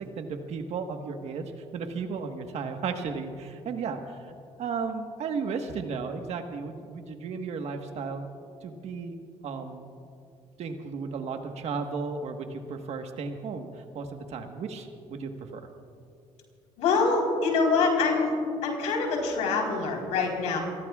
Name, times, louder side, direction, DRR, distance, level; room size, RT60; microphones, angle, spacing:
voice 1, 0.0-4.3 4.6-8.2 8.6-9.2 9.4-9.9 10.6-15.7, right 5 dB, 65° right, 5 dB, 1.4 m, -34 dB
voice 2, 16.8-18.3 18.6-20.6, left 4 dB, 85° left, 0 dB, 4.1 m, -25 dB
28.5 x 20.0 x 2.4 m, 2.6 s
supercardioid pair, 75°, 12 cm